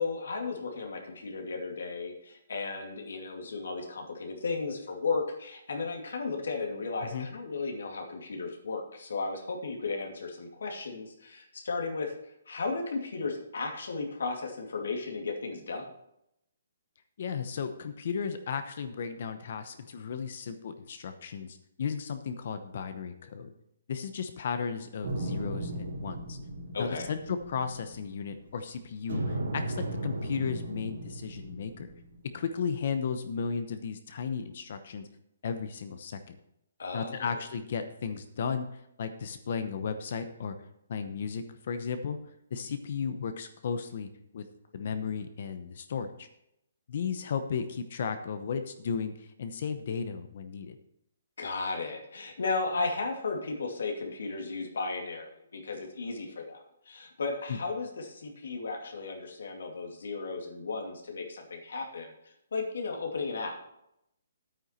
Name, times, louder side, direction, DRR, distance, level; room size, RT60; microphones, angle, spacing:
voice 1, 0.0-12.1 12.5-15.9 26.7-27.1 36.8-37.4 51.4-62.1 62.5-63.6, left 4 dB, 70° left, 2 dB, 2.4 m, -35 dB
voice 2, 17.2-23.5 23.9-26.4 26.8-29.8 30.0-31.9 32.3-35.1 35.4-36.4 36.9-38.7 39.0-40.5 40.9-42.2 42.5-44.1 44.3-44.4 44.7-46.3 46.9-50.8 57.5-57.6, left 6 dB, 40° left, 9 dB, 0.8 m, -34 dB
sound 1, 25.0-28.6 29.1-32.4, right 1 dB, 70° right, 4.0 m, -36 dB
9.8 x 9.0 x 4.4 m, 0.78 s
hypercardioid pair, 175°, 0 cm